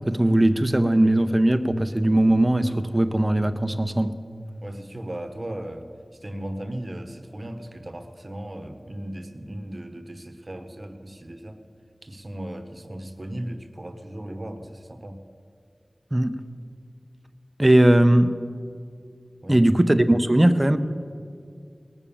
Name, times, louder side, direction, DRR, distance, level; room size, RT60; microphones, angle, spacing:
voice 1, 0.1-4.2 16.1-16.3 17.6-18.3 19.5-20.8, right 1 dB, 25° right, 10 dB, 0.7 m, -19 dB
voice 2, 4.6-5.9 6.2-11.6 12.0-15.2 19.4-19.7, right 1 dB, 45° right, 7 dB, 1.1 m, -36 dB
19.0 x 7.1 x 7.1 m, 2.3 s
wide cardioid pair, 50°, 0 cm